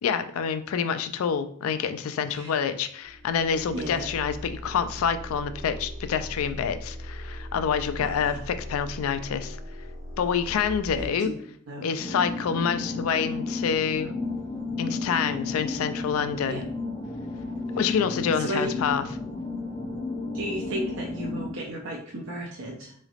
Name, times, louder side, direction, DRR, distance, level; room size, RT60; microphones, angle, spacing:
voice 1, 0.0-9.6 10.2-11.3 11.8-14.1 14.8-16.6 17.8-19.0, left 7 dB, 90° left, 11 dB, 0.3 m, -27 dB
sound 1, 3.0-11.1, equal, 45° right, 0.9 m, -39 dB
voice 2, 3.7-4.1 8.0-8.4 11.0-11.4 11.7-11.9 16.5-16.6 18.4-18.7 20.3-22.9, right 1 dB, 65° right, -2 dB, 0.5 m, -34 dB
sound 2, 12.0-21.5, left 3 dB, 30° left, 0.6 m, -33 dB
3.9 x 3.2 x 2.4 m, 0.62 s
head